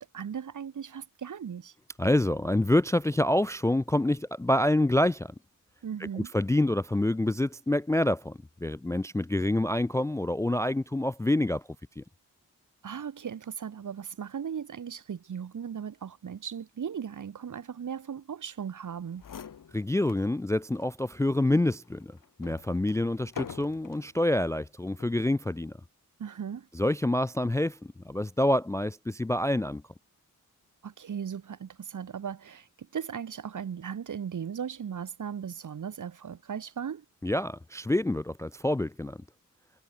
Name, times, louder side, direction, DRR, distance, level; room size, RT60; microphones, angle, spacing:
voice 1, 0.0-1.7 5.8-6.3 12.8-19.2 26.2-26.7 30.8-32.7 32.9-37.0, right 7 dB, 70° right, 2.1 m, -37 dB
voice 2, 2.0-5.3 6.2-11.6 12.0-12.1 19.7-25.7 26.7-27.8 28.1-29.8 37.2-39.2, left 1 dB, 10° left, 0.3 m, -27 dB
sound 1, 18.9-19.0 19.2-20.3 20.7-20.9 21.5-24.1 24.9-25.2, left 7 dB, 90° left, 3.8 m, -45 dB
wide cardioid pair, 155°, 32 cm